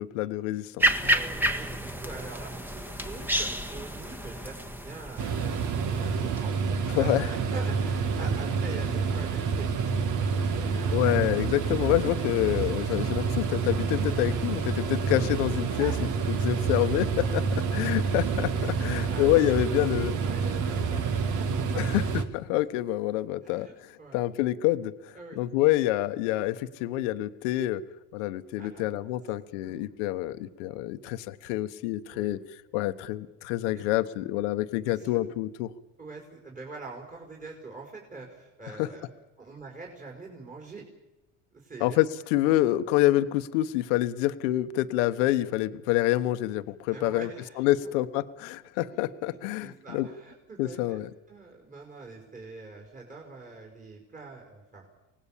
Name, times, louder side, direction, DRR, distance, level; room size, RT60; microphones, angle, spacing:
voice 1, 0.0-0.9 6.9-7.3 10.9-15.9 16.3-17.4 17.7-20.2 21.8-27.8 28.1-32.4 32.7-35.7 38.8-38.9 41.8-47.3 47.6-50.1 50.6-51.1, left 15 dB, 85° left, 11 dB, 1.2 m, -27 dB
sound 1, 0.8-6.4, right 1 dB, 5° right, 1.6 m, -30 dB
voice 2, 1.0-9.7 10.5-11.2 15.8-16.5 17.3-17.4 18.6-19.7 20.1-22.0 23.4-24.2 25.1-25.4 28.6-29.1 29.6-29.9 32.1-32.4 33.7-33.8 34.9-35.2 36.0-39.1 39.4-40.8 41.5-42.0 46.9-47.9 49.6-51.0 51.3-54.9, right 3 dB, 20° right, 0 dB, 5.1 m, -44 dB
sound 2, 5.2-22.2, right 5 dB, 55° right, 2.2 m, -28 dB
24.5 x 19.0 x 7.4 m, 0.98 s
supercardioid pair, 105°, 36 cm